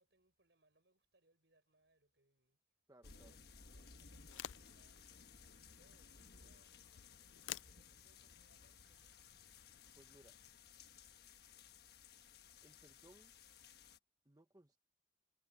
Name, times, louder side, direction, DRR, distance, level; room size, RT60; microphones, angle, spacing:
voice 1, 0.0-2.8 3.1-7.6 7.9-9.4, right 2 dB, 65° right, 7.6 m, -77 dB
voice 2, 2.9-3.3 10.0-10.4 12.6-13.3 14.2-14.8, right 1 dB, 20° right, 0.9 m, -64 dB
sound 1, 3.0-14.0, left 6 dB, 55° left, 1.4 m, -60 dB
sound 2, 4.1-10.5, left 13 dB, 85° left, 0.4 m, -55 dB
head